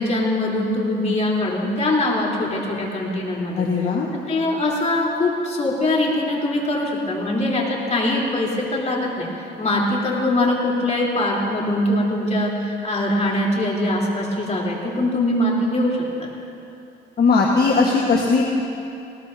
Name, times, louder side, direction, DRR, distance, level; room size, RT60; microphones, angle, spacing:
voice 1, 0.0-3.7 4.3-9.3 9.6-16.3, left 1 dB, 35° left, -4 dB, 3.5 m, -22 dB
voice 2, 3.6-4.1 17.2-18.4, left 4 dB, 55° left, -2 dB, 1.5 m, -18 dB
19.5 x 18.5 x 2.8 m, 2.7 s
cardioid pair, 90°, 20 cm